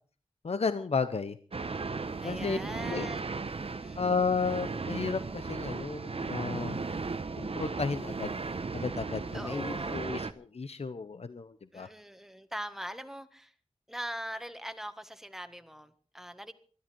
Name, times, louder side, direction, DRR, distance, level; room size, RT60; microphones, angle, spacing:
voice 1, 0.4-1.4 2.2-2.6 2.9-3.1 4.0-6.8 7.4-8.3 8.7-11.9, left 4 dB, 70° left, 11 dB, 0.8 m, -33 dB
sound 1, 1.5-10.3, right 4 dB, 65° right, 1.0 m, -36 dB
voice 2, 2.2-3.2 3.6-4.0 9.3-10.0 11.7-13.5 13.9-16.5, equal, 5° right, 9 dB, 1.6 m, -41 dB
21.5 x 13.0 x 4.6 m, 0.42 s
wide cardioid pair, 80°, 11 cm